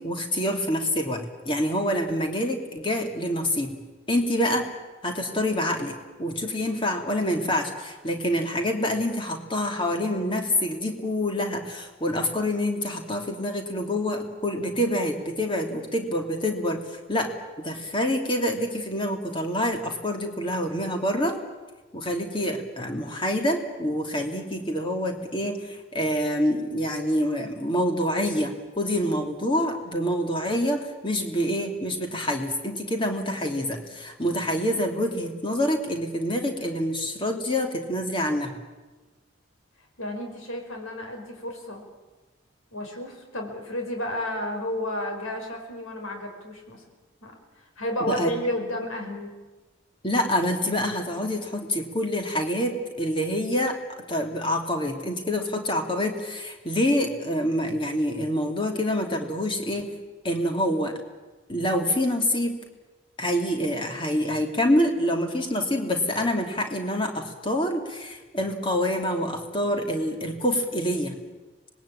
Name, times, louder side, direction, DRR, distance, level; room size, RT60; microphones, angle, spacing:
voice 1, 0.0-3.8 4.1-4.7 5.0-16.8 17.1-17.3 17.6-21.4 21.9-38.5 48.1-48.3 50.0-53.7 54.1-59.9 60.2-61.0 61.5-62.6 63.2-71.1, equal, 25° left, 3 dB, 2.7 m, -26 dB
voice 2, 40.0-41.8 42.7-46.8 47.2-47.3 47.8-49.3, left 1 dB, 90° left, 3 dB, 5.4 m, -31 dB
25.5 x 20.0 x 8.8 m, 1.2 s
head